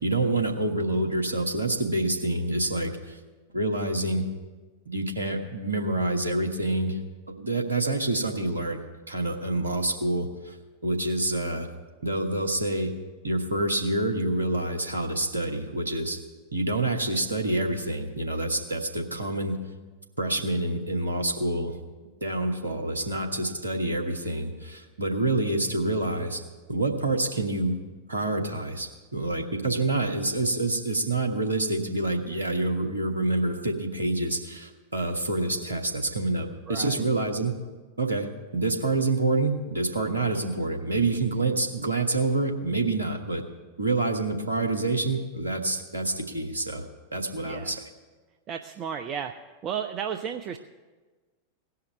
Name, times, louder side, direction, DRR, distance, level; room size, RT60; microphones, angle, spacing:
voice 1, 0.0-3.2 3.5-4.3 4.8-7.0 7.4-8.8 9.1-10.5 10.8-11.7 12.0-12.9 13.2-16.2 16.5-19.6 20.2-21.8 22.2-26.4 26.7-27.8 28.1-37.6 38.0-43.4 43.8-46.8 47.1-47.8, right 2 dB, 75° right, 3 dB, 1.4 m, -27 dB
voice 2, 36.7-37.1 47.4-47.7 48.5-49.3 49.6-50.6, right 8 dB, 30° right, 5 dB, 0.6 m, -33 dB
17.0 x 5.7 x 9.2 m, 1.3 s
figure-of-eight pair, 90°, 0 cm